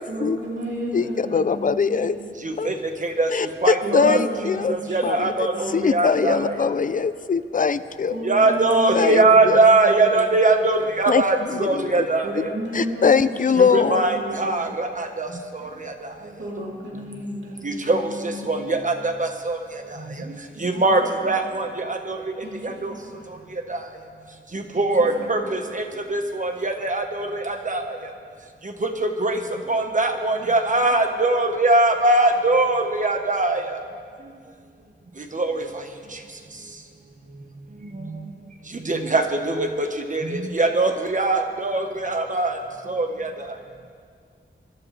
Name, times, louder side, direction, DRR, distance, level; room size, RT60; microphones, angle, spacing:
voice 1, 0.1-2.2 3.8-6.5 8.1-10.2 12.2-14.6 16.4-18.7 20.6-20.9 21.2-21.4 22.4-23.1 23.4-23.6 24.7-24.9 25.2-25.4, equal, 70° right, -4 dB, 3.0 m, -33 dB
voice 2, 0.9-2.2 2.6-2.7 3.3-4.7 5.0-5.5 5.7-8.1 8.9-9.6 11.1-11.2 11.7-12.1 12.4-12.5 12.7-14.0, left 6 dB, 40° left, 13 dB, 0.5 m, -21 dB
voice 3, 3.6-4.2 4.9-6.5 8.2-12.2 13.6-15.3 17.6-18.0 18.5-18.9 19.2-19.6 20.6-22.2 22.8-22.9 24.8-25.8 26.1-27.8 29.0-29.4 29.7-33.6 35.3-35.6 38.9-42.5 42.9-43.3, right 2 dB, 40° right, 5 dB, 1.3 m, -21 dB
24.5 x 12.0 x 3.3 m, 2.2 s
wide cardioid pair, 80°, 20 cm